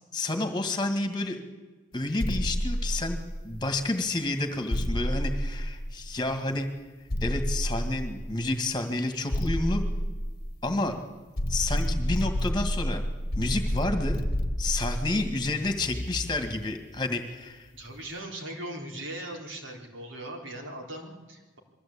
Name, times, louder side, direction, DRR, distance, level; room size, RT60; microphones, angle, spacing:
voice 1, 0.1-1.4 1.9-3.2 3.4-6.7 7.2-9.8 10.6-10.9 11.5-13.0 13.4-14.2 14.6-17.7, left 2 dB, 20° left, 7 dB, 2.0 m, -30 dB
sound 1, 2.2-3.7 4.7-6.3 7.1-8.5 9.3-10.9 11.4-16.6, equal, 50° left, 1.2 m, -30 dB
voice 2, 17.8-21.6, right 1 dB, 80° right, 1 dB, 4.0 m, -39 dB
22.0 x 14.5 x 8.7 m, 1.2 s
head